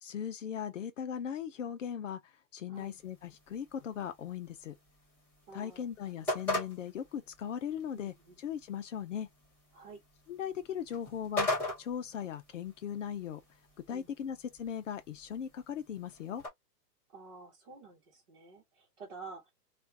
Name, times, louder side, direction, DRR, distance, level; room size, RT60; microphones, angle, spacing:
voice 1, 0.0-2.2 2.5-4.7 5.5-8.1 8.4-9.3 10.3-11.5 11.8-13.4 13.9-16.4, left 8 dB, 50° left, 0.7 m, -38 dB
sound 1, 2.7-16.5, left 2 dB, 5° left, 1.0 m, -41 dB
voice 2, 5.5-6.4 7.9-8.4 9.7-10.0 13.9-14.3 17.1-19.5, right 4 dB, 35° right, 1.3 m, -51 dB
2.6 x 2.5 x 3.3 m
hypercardioid pair, 175°, 49 cm